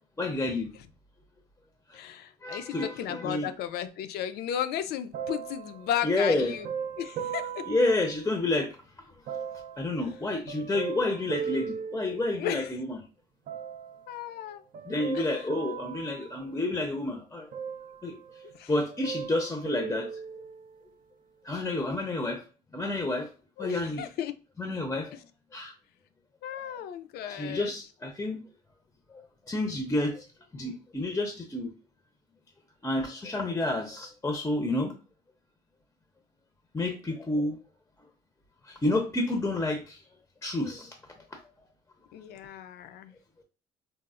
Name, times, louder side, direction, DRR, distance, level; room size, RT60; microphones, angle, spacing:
voice 1, 0.2-0.7 2.4-3.5 6.0-6.5 7.7-8.7 9.8-13.0 14.9-17.5 18.0-18.1 18.7-20.1 21.5-22.4 22.7-23.3 23.6-24.0 24.6-25.1 25.5-25.7 27.3-28.4 29.5-30.2 30.5-31.7 32.8-34.9 36.7-37.5 38.8-40.0 40.4-40.9, left 2 dB, 15° left, 0.5 m, -29 dB
voice 2, 1.9-6.7 7.0-7.6 12.4-12.7 14.1-14.6 15.1-15.3 18.5-18.7 23.6-24.3 26.4-27.7 42.1-43.1, left 10 dB, 70° left, 0.5 m, -34 dB
sound 1, 5.1-8.7 9.3-12.8 13.5-14.1 14.7-17.1 17.5-18.5 18.8-20.8 21.5-21.6, right 7 dB, 55° right, 0.4 m, -38 dB
4.1 x 2.0 x 2.4 m
cardioid pair, 110°, 17 cm